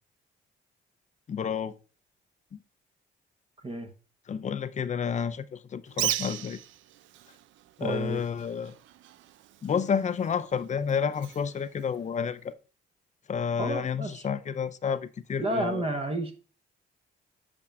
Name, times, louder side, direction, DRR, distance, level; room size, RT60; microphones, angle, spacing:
voice 1, 1.3-1.7 2.5-2.6 4.3-6.6 7.8-8.7 9.6-12.6 13.3-15.9, left 7 dB, 35° left, 0.5 m, -30 dB
Bird, 5.9-12.5, right 13 dB, 75° right, 0.4 m, -38 dB
voice 2, 7.8-8.2 13.6-14.3 15.4-16.3, right 2 dB, 30° right, 0.9 m, -31 dB
8.5 x 5.2 x 2.3 m
cardioid pair, 90°, 20 cm